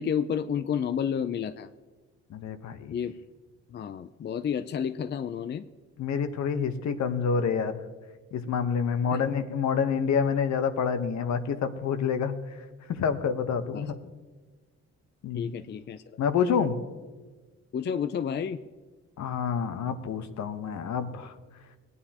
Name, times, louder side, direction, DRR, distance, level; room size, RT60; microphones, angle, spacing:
voice 1, 0.0-1.7 2.9-3.1 3.7-5.6 13.7-13.8 15.3-16.0 17.7-18.6, left 8 dB, 35° left, 10 dB, 0.4 m, -30 dB
voice 2, 2.3-3.0 6.0-7.8 8.3-12.3 12.9-14.0 15.2-15.5 16.2-16.8 19.2-21.3, left 6 dB, 65° left, 9 dB, 1.0 m, -28 dB
18.5 x 9.6 x 2.9 m, 1.3 s
cardioid pair, 90°, 30 cm